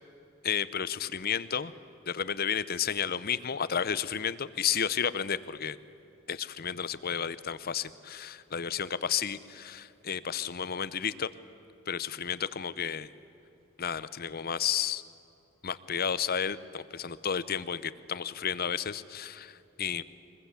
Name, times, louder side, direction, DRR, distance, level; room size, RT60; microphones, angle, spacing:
voice 1, 0.4-1.7 2.1-5.8 6.3-11.3 11.9-13.1 13.8-15.0 15.6-20.0, left 8 dB, 45° left, 16 dB, 0.7 m, -32 dB
24.0 x 21.0 x 8.3 m, 2.9 s
head